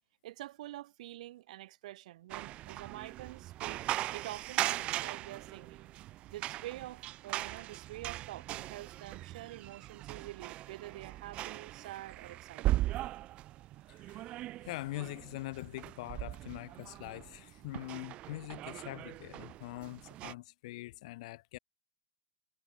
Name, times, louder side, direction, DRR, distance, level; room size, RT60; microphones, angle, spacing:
voice 1, 0.2-3.8 4.1-5.9 6.3-12.8, right 15 dB, 85° right, 6.7 m, -47 dB
sound 1, 2.3-20.3, right 15 dB, 30° right, 1.8 m, -39 dB
voice 2, 13.9-14.3 14.6-21.6, left 19 dB, 65° left, 1.8 m, -43 dB
supercardioid pair, 175°, 4 cm